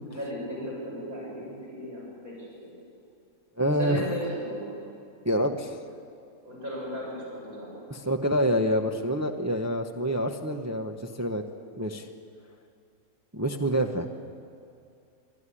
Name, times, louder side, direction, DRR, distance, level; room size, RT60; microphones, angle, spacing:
voice 1, 0.1-2.7 3.8-4.8 6.4-7.8, equal, 65° right, -5 dB, 7.5 m, -36 dB
voice 2, 3.6-4.1 5.2-5.8 7.9-11.4 11.8-12.1 13.3-14.1, equal, 15° right, 4 dB, 0.8 m, -27 dB
25.0 x 13.0 x 9.9 m, 2.5 s
omnidirectional pair, 1.6 m